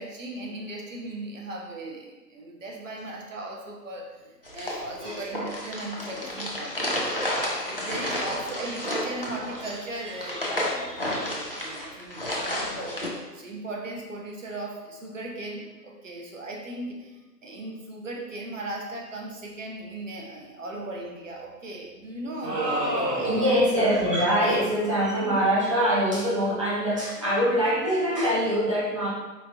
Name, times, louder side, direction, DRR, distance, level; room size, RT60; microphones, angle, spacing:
voice 1, 0.0-4.1 4.5-7.3 7.7-13.0 13.3-22.8 23.1-23.6, right 2 dB, 50° right, -1 dB, 0.9 m, -37 dB
sound 1, 4.4-13.1, left 1 dB, 40° left, 0.4 m, -31 dB
sound 2, 22.4-23.8, right 1 dB, 75° right, 1.0 m, -28 dB
voice 2, 23.2-29.1, equal, 20° right, -8 dB, 0.6 m, -24 dB
4.3 x 3.2 x 2.8 m, 1.1 s
figure-of-eight pair, 140°, 50 cm